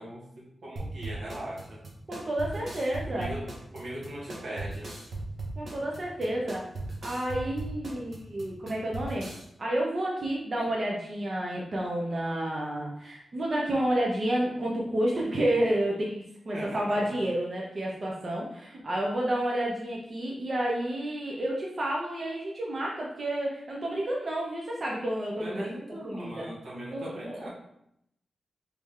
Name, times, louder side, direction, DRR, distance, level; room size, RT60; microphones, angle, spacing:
voice 1, 0.0-1.8 3.1-3.5 3.7-4.9 10.6-10.7 16.5-17.2 25.4-27.5, right 1 dB, 85° right, -5 dB, 1.3 m, -40 dB
sound 1, 0.8-9.4, right 2 dB, 55° right, 0.9 m, -38 dB
voice 2, 2.1-3.3 5.6-6.6 7.0-9.3 9.6-25.7 26.0-26.5 26.9-27.5, right 1 dB, 35° right, -3 dB, 0.6 m, -30 dB
3.4 x 3.1 x 3.5 m, 0.77 s
wide cardioid pair, 170°, 0 cm